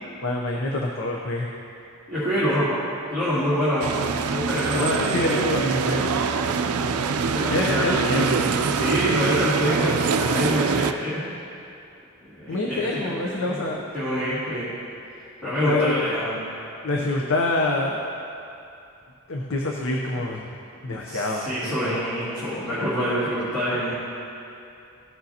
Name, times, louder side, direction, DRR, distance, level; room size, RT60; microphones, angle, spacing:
voice 1, 0.2-1.5 4.8-6.1 7.5-8.6 12.5-13.8 15.6-16.0 16.8-18.1 19.3-22.0, left 2 dB, 60° left, -1 dB, 0.7 m, -26 dB
voice 2, 2.1-2.7 3.1-4.0 4.3-5.6 7.2-8.4 8.7-11.2 12.2-13.1 13.5-14.7 15.4-16.4 20.9-23.9, equal, 5° left, -15 dB, 2.3 m, -26 dB
sound 1, 3.8-10.9, right 5 dB, 80° right, 0.4 m, -24 dB
15.0 x 6.5 x 2.8 m, 2.7 s
head